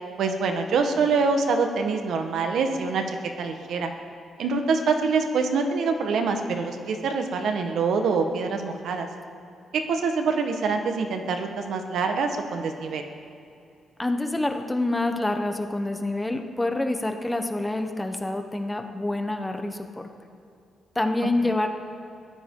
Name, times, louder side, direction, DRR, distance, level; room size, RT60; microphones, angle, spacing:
voice 1, 0.2-3.0 3.4-3.9 4.4-9.1 9.7-13.0 21.5-21.6, right 4 dB, 70° right, 5 dB, 1.4 m, -25 dB
voice 2, 14.0-20.1 20.9-21.7, left 2 dB, 10° left, 5 dB, 1.0 m, -27 dB
22.5 x 15.0 x 3.9 m, 2.5 s
cardioid pair, 130°, 0 cm